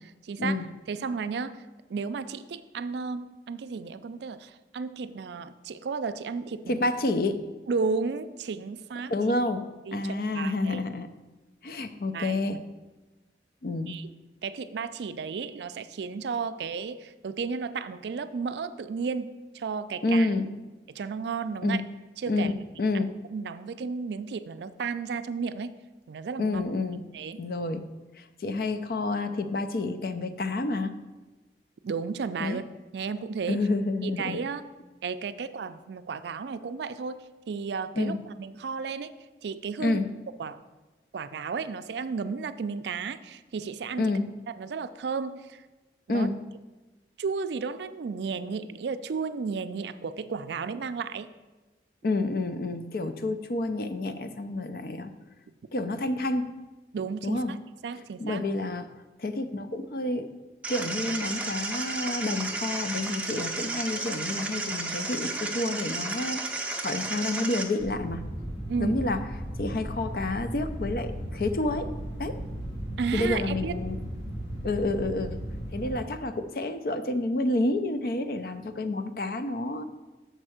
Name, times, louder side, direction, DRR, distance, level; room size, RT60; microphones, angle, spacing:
voice 1, 0.2-1.6 1.9-6.9 7.7-9.1 9.9-10.8 12.1-12.4 13.9-14.1 14.4-20.3 20.9-21.8 22.2-22.5 23.3-25.8 26.1-26.6 27.1-27.4 31.8-32.6 32.9-33.6 34.0-34.6 35.0-39.1 39.4-40.0 40.4-40.6 41.1-44.1 44.5-45.6 46.1-46.3 47.2-51.3 56.9-57.6 57.8-58.4 68.7-69.0 73.0-73.8, right 5 dB, 75° right, 12 dB, 0.4 m, -33 dB
voice 2, 6.7-7.4 9.1-9.6 9.9-11.1 11.6-12.6 13.6-14.0 20.0-20.5 21.6-21.8 22.3-23.1 26.4-27.0 27.4-27.9 28.2-30.9 32.4-32.6 33.5-34.4 38.0-38.2 39.8-40.1 44.0-44.3 46.1-46.3 52.0-55.1 55.7-56.5 57.2-57.5 58.2-58.9 59.2-60.3 60.7-68.2 68.8-69.2 69.6-71.9 72.2-72.4 73.1-74.0 74.6-75.4 75.7-79.8, left 2 dB, 55° left, 10 dB, 0.5 m, -29 dB
sound 1, 60.6-67.6, right 3 dB, 5° right, 0.5 m, -33 dB
sound 2, 67.8-75.9, equal, 90° left, 2.7 m, -36 dB
6.6 x 4.4 x 6.3 m, 1.2 s
head